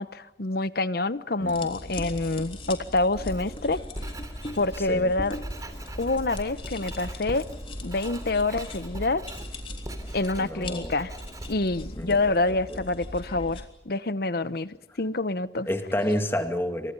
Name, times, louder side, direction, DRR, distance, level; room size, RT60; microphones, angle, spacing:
voice 1, 0.0-3.8 4.6-5.4 6.0-7.4 7.8-9.2 10.1-11.1 11.5-15.7, left 2 dB, 60° left, 14 dB, 1.0 m, -27 dB
sound 1, 1.5-13.6, left 1 dB, 30° left, 3.4 m, -39 dB
Writing, 3.1-12.6, right 1 dB, 20° right, 3.2 m, -41 dB
voice 2, 10.3-10.9 12.0-12.3 12.7-12.8 15.7-16.9, left 1 dB, 15° left, 6 dB, 2.2 m, -29 dB
29.0 x 25.5 x 5.5 m, 0.96 s
head